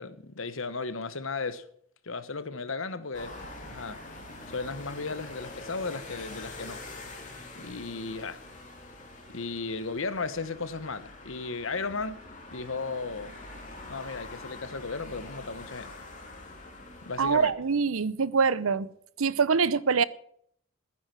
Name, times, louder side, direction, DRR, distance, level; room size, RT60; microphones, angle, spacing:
voice 1, 0.0-1.6 2.0-3.3 3.7-4.0 4.5-6.8 7.5-8.4 9.3-12.2 12.5-13.3 13.9-15.9 17.0-17.5, left 4 dB, 70° left, 1.2 m, -35 dB
sound 1, 3.1-17.5, left 2 dB, 35° left, 3.0 m, -45 dB
voice 2, 17.2-18.9 19.2-20.0, right 5 dB, 80° right, 0.7 m, -24 dB
14.5 x 10.5 x 6.2 m
head